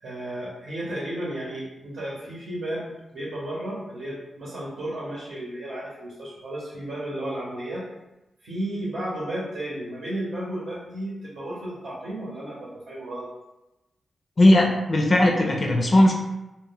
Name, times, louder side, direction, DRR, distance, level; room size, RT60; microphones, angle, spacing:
voice 1, 0.0-7.9 8.4-13.3, right 1 dB, 75° right, -6 dB, 0.8 m, -33 dB
voice 2, 14.4-16.1, left 1 dB, 40° left, 1 dB, 0.4 m, -18 dB
2.1 x 2.1 x 3.5 m, 0.99 s
cardioid pair, 90°, 0 cm